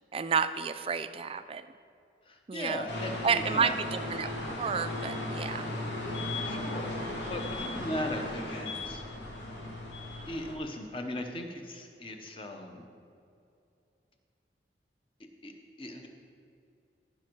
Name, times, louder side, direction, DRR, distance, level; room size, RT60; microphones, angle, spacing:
voice 1, 0.1-1.7 2.5-2.9 3.2-4.3 4.6-5.7, right 6 dB, 30° right, 11 dB, 0.3 m, -30 dB
voice 2, 2.3-3.8 6.4-7.0 7.3-9.0 10.3-12.9 15.2-15.5 15.8-16.1, left 1 dB, 30° left, 4 dB, 0.9 m, -38 dB
sound 1, 2.9-10.6, left 1 dB, 85° left, 1.6 m, -36 dB
16.0 x 5.4 x 4.6 m, 2.5 s
head